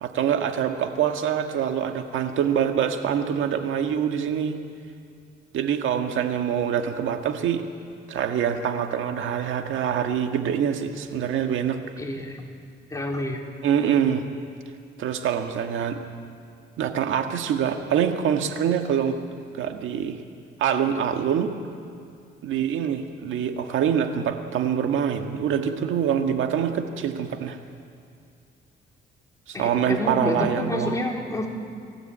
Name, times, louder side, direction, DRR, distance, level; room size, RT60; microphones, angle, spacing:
voice 1, 0.0-4.6 5.5-7.6 8.1-11.8 13.6-14.2 15.0-16.0 16.8-19.2 19.6-20.2 20.6-21.5 22.4-27.6 29.5-31.0, right 8 dB, 80° right, 5 dB, 1.6 m, -25 dB
voice 2, 12.0-12.4 12.9-13.4 29.5-31.5, left 1 dB, 15° left, -1 dB, 4.0 m, -28 dB
23.5 x 16.0 x 8.8 m, 2.3 s
cardioid pair, 90°, 20 cm